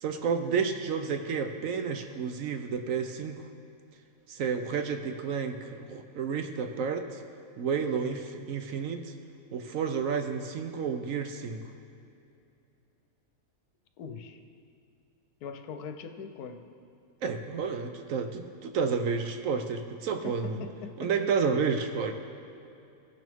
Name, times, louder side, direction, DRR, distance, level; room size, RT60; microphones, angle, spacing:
voice 1, 0.0-3.4 4.3-7.2 7.6-9.1 9.5-11.6 17.2-20.6 21.0-22.1, right 5 dB, 65° right, 6 dB, 0.9 m, -31 dB
voice 2, 14.0-14.4 15.4-16.6 20.2-21.3, left 5 dB, 80° left, 6 dB, 1.2 m, -41 dB
16.5 x 6.2 x 3.5 m, 2.6 s
omnidirectional pair, 1.6 m